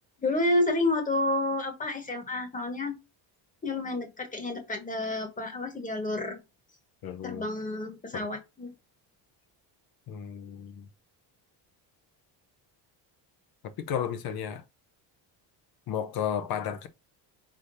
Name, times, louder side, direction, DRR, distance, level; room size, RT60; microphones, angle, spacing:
voice 1, 0.2-2.9 3.6-6.4 7.2-8.7, left 2 dB, 20° left, 1.5 m, -29 dB
voice 2, 7.0-7.5 8.1-8.3 10.1-10.9 13.8-14.6 15.9-16.9, left 8 dB, 55° left, 0.9 m, -33 dB
4.9 x 3.8 x 2.6 m
cardioid pair, 130°, 43 cm